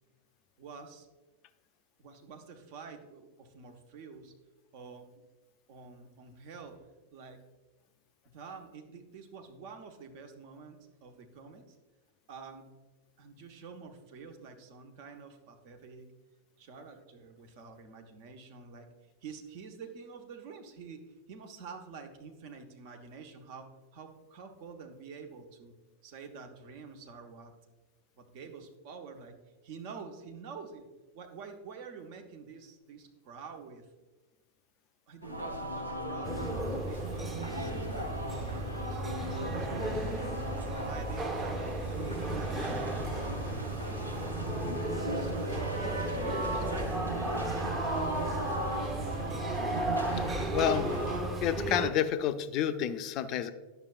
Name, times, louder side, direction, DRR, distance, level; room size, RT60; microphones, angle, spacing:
voice 1, 0.6-1.1 2.0-4.3 4.7-5.1 5.7-6.8 7.1-7.4 8.2-11.8 12.3-12.7 13.2-16.1 16.6-18.9 19.2-25.7 26.0-27.5 28.2-29.3 29.6-30.9 31.1-33.8 35.1-40.2 40.6-43.4 43.9-44.4 44.9-49.1, right 5 dB, 45° right, 4 dB, 0.9 m, -48 dB
sound 1, 35.2-51.2, equal, 85° right, 0.8 m, -38 dB
sound 2, 36.2-51.9, right 2 dB, 20° right, 0.9 m, -34 dB
voice 2, 50.1-50.9 51.4-53.5, left 10 dB, 40° left, 11 dB, 0.4 m, -30 dB
10.0 x 6.8 x 2.4 m, 1.2 s
figure-of-eight pair, 90°, 0 cm